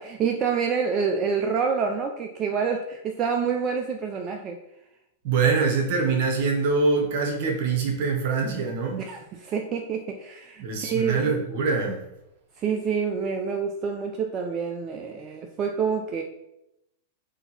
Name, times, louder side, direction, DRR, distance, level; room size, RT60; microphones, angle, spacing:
voice 1, 0.0-4.6 9.0-11.3 12.6-16.2, right 6 dB, 35° right, 3 dB, 0.5 m, -27 dB
voice 2, 5.2-9.0 10.6-12.1, right 4 dB, 60° right, 3 dB, 1.0 m, -24 dB
3.8 x 2.8 x 4.1 m, 0.85 s
hypercardioid pair, 105°, 0 cm